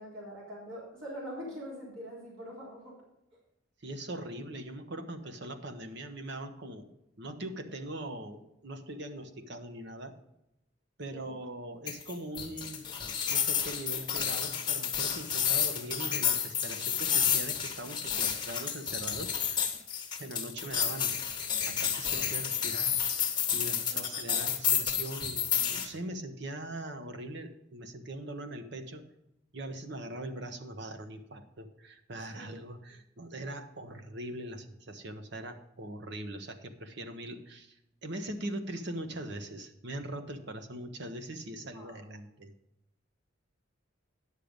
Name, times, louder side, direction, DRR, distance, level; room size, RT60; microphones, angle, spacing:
voice 1, 0.0-3.0 11.1-11.3 23.9-24.0 24.3-24.4 32.3-32.6 41.7-42.0, equal, 80° right, -5 dB, 3.8 m, -43 dB
voice 2, 3.8-6.9 7.2-10.1 11.0-12.8 13.3-19.8 20.2-21.1 21.7-23.0 23.5-29.0 29.5-42.5, right 1 dB, 60° right, 7 dB, 1.0 m, -41 dB
sound 1, 11.9-25.9, left 8 dB, 25° left, 1.2 m, -30 dB
10.5 x 6.6 x 5.2 m, 0.87 s
head